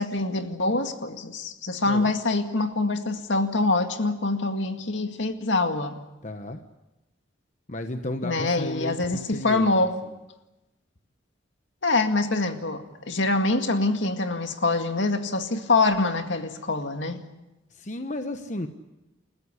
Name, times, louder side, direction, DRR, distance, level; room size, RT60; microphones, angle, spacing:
voice 1, 0.0-6.0 8.2-10.0 11.8-17.2, left 2 dB, 70° left, 2.1 m, -25 dB
voice 2, 6.2-6.6 7.7-9.7 10.0-10.1 17.7-18.7, left 1 dB, 40° left, 1.1 m, -33 dB
29.5 x 14.5 x 9.9 m
head